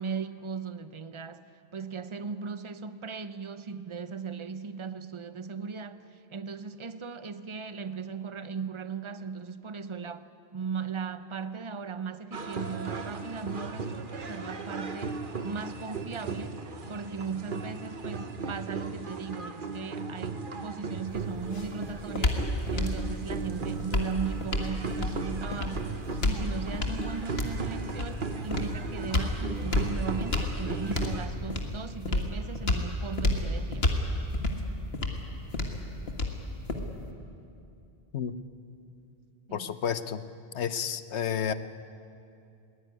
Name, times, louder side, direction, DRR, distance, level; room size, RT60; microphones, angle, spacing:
voice 1, 0.0-1.4 1.7-16.6 16.9-25.9 26.2-33.9 39.5-39.7, right 5 dB, 30° right, 0.8 m, -37 dB
sound 1, 12.3-31.3, right 4 dB, 50° right, 1.4 m, -37 dB
sound 2, 21.1-37.1, left 2 dB, 65° left, 2.1 m, -31 dB
voice 2, 39.5-40.2 40.5-41.5, left 8 dB, 85° left, 1.2 m, -31 dB
21.5 x 18.5 x 9.7 m
omnidirectional pair, 1.1 m